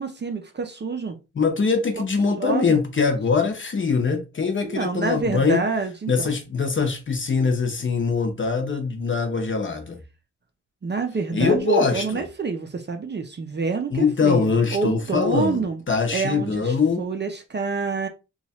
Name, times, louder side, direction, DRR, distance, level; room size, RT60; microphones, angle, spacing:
voice 1, 0.0-1.2 2.4-2.8 4.6-6.3 10.8-15.8 16.1-18.1, right 4 dB, 35° right, 0.5 m, -27 dB
voice 2, 1.3-5.6 6.1-10.0 11.3-12.2 13.9-17.0, left 5 dB, 40° left, 0.7 m, -22 dB
2.9 x 2.3 x 4.1 m
wide cardioid pair, 170°, 32 cm